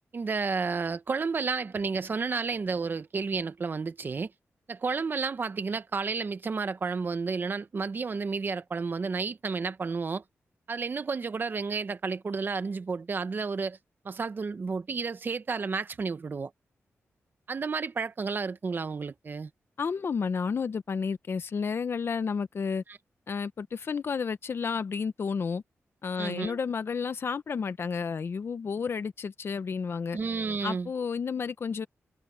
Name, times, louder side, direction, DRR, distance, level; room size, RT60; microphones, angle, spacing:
voice 1, 0.1-4.3 4.7-10.2 10.7-13.8 14.0-16.5 17.5-19.5 22.9-23.0 26.2-26.6 30.1-30.9, right 4 dB, 45° right, 1.0 m, -31 dB
voice 2, 19.8-22.8 23.3-25.6 26.0-30.2 30.6-31.9, left 5 dB, 55° left, 0.9 m, -31 dB
wide cardioid pair, 115°, 5 cm